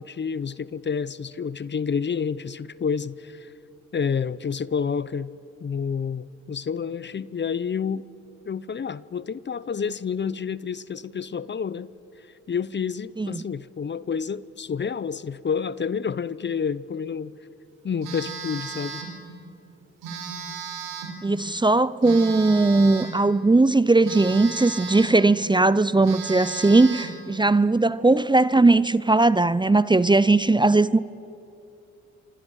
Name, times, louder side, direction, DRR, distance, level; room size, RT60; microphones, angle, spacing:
voice 1, 0.0-3.5 3.9-5.3 5.6-8.1 8.5-11.9 12.2-17.4 17.8-19.1, left 6 dB, 35° left, 0.7 m, -29 dB
Telephone, 18.0-19.2 20.0-21.2 22.0-23.2 24.0-25.2 25.6-25.7 26.0-27.2, right 5 dB, 85° right, 4.1 m, -35 dB
voice 2, 21.2-31.0, right 2 dB, 15° right, 0.7 m, -19 dB
27.0 x 24.5 x 6.4 m
supercardioid pair, 55°, 31 cm